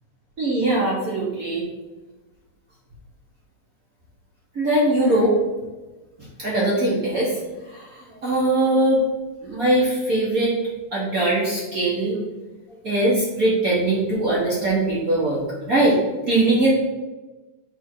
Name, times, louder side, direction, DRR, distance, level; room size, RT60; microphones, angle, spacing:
voice 1, 0.4-1.6 4.5-5.4 6.4-7.4 7.7-9.0 9.4-10.5 10.9-12.2 12.8-16.0 16.3-16.7, right 2 dB, 85° right, -5 dB, 0.7 m, -21 dB
10.0 x 3.6 x 4.5 m, 1.2 s
omnidirectional pair, 3.9 m